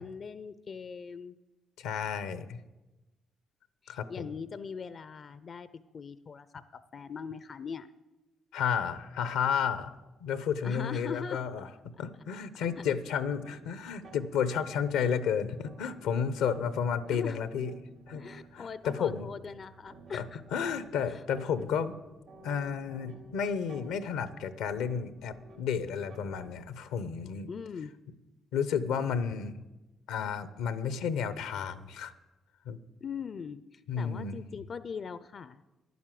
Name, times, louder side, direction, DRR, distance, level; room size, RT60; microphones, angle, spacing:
voice 1, 0.0-1.4 3.8-5.7 5.9-6.6 6.9-7.9 10.6-11.4 12.8-12.9 17.1-17.4 18.1-20.4 21.1-21.2 27.5-27.9 33.0-35.7, left 6 dB, 55° left, 14 dB, 0.5 m, -41 dB
voice 2, 1.8-2.6 3.9-4.3 8.5-9.9 10.2-11.7 12.0-17.7 18.1-18.2 18.5-19.3 20.1-20.2 20.5-22.0 22.4-27.5 28.5-29.5 30.1-32.1 32.7-32.8 33.9-34.4, left 7 dB, 85° left, 14 dB, 0.7 m, -32 dB
sound 1, 12.6-26.8, right 2 dB, 80° right, 3.1 m, -54 dB
11.0 x 9.4 x 7.6 m, 1.1 s
supercardioid pair, 55°, 0 cm